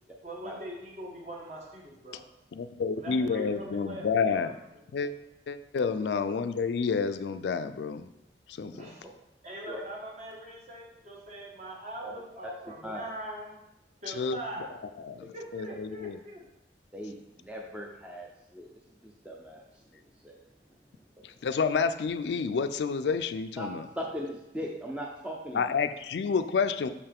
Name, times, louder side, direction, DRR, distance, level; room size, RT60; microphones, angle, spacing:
voice 1, 0.2-2.2 3.0-4.5 4.9-5.1 8.8-9.0 9.4-13.5 14.0-14.7 15.1-16.4, right 1 dB, 40° right, -2 dB, 1.4 m, -42 dB
voice 2, 2.5-4.5 4.9-5.1 5.5-8.1 8.5-8.7 14.2-14.4 15.0-15.2 15.5-16.2 21.2-23.9 25.5-26.9, left 5 dB, 75° left, 10 dB, 0.4 m, -29 dB
voice 3, 16.9-18.7 19.0-19.6 19.9-20.0 20.2-20.4 23.6-23.7 24.0-25.7, equal, 5° right, -2 dB, 0.5 m, -39 dB
6.6 x 5.6 x 3.5 m, 0.88 s
head